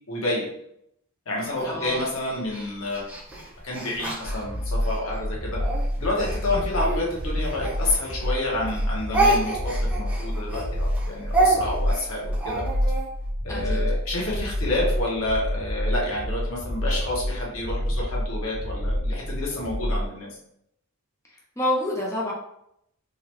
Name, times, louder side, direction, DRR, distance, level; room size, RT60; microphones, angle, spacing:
voice 1, 0.1-0.5 1.3-3.0 3.6-5.6 6.0-12.6 13.4-20.3, left 2 dB, 75° left, -3 dB, 1.1 m, -29 dB
voice 2, 1.6-2.0 13.5-13.8 21.6-22.3, left 1 dB, 15° left, -4 dB, 0.5 m, -27 dB
Speech, 1.9-5.0 5.6-8.4 8.7-13.1, right 2 dB, 10° right, 1.1 m, -27 dB
sound 1, 4.2-20.1, equal, 45° right, 0.6 m, -28 dB
3.7 x 2.2 x 3.0 m, 0.74 s
head